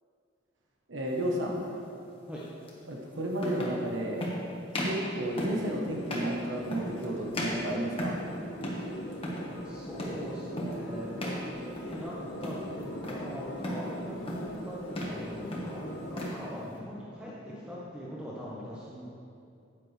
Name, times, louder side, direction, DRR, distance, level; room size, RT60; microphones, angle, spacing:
voice 1, 0.9-1.8 2.9-4.3 4.7-8.1, right 1 dB, 90° right, -1 dB, 1.1 m, -32 dB
sound 1, 1.2-1.4 2.7-2.8 3.4-3.8 4.2-4.4 4.7-5.0 5.4-5.7 6.1-6.4 6.7-7.0 7.3-8.3 8.6-8.9 9.1-9.5 10.0-10.2 10.6-10.8 11.2-11.4 11.8-12.1 12.4-13.2 13.6-13.9 14.3-14.6 14.9-15.2 15.5-16.4, equal, 30° left, 1.3 m, -35 dB
sound 2, 5.3-16.3, left 1 dB, 85° left, 1.1 m, -41 dB
voice 2, 9.5-12.1 12.4-19.0, equal, 5° right, -7 dB, 1.0 m, -41 dB
9.6 x 9.2 x 3.2 m, 2.5 s
head